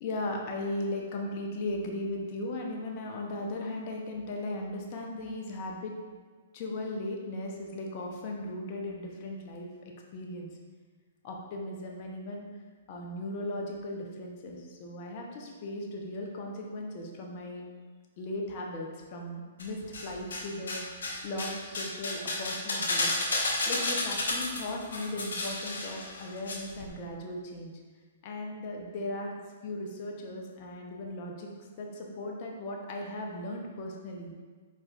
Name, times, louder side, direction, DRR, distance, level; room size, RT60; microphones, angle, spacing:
voice 1, 0.0-5.9 6.5-10.5 11.2-12.5 12.9-17.6 18.2-23.1 23.7-27.7 28.2-29.4 29.6-31.5 31.8-34.3, left 1 dB, 45° left, 0 dB, 0.7 m, -37 dB
sound 1, 19.6-20.4 20.7-26.5 26.8-26.9, left 2 dB, 75° left, 1.0 m, -31 dB
4.6 x 4.5 x 2.4 m, 1.5 s
hypercardioid pair, 125°, 0 cm